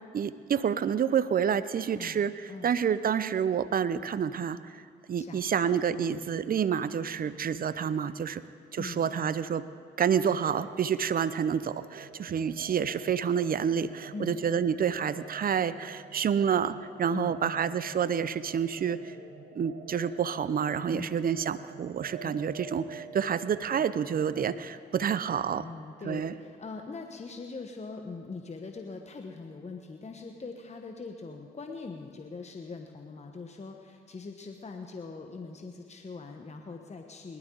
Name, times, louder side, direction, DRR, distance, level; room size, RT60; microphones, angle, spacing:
voice 1, 0.1-4.7 5.1-8.4 8.7-9.6 10.0-19.1 19.5-25.6 26.0-26.3, right 7 dB, 45° right, 15 dB, 0.6 m, -28 dB
voice 2, 1.9-2.7 5.2-6.3 8.8-9.5 14.1-14.4 17.1-17.6 20.9-21.2 22.2-22.3 25.6-37.4, left 4 dB, 30° left, 4 dB, 1.2 m, -42 dB
sound 1, 10.5-24.6, right 5 dB, 75° right, 1.4 m, -49 dB
19.5 x 12.0 x 3.9 m, 2.1 s
hypercardioid pair, 45°, 21 cm